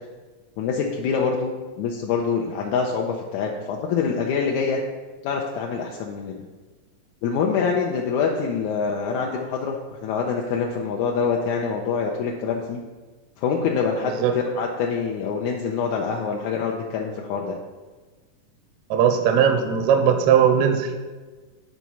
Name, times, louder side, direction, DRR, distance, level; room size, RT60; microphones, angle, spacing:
voice 1, 0.6-4.8 5.2-6.4 7.2-12.8 13.4-17.5, left 5 dB, 80° left, 0 dB, 1.8 m, -25 dB
voice 2, 18.9-20.9, right 8 dB, 80° right, 6 dB, 1.7 m, -18 dB
9.1 x 4.1 x 6.1 m, 1.3 s
omnidirectional pair, 3.8 m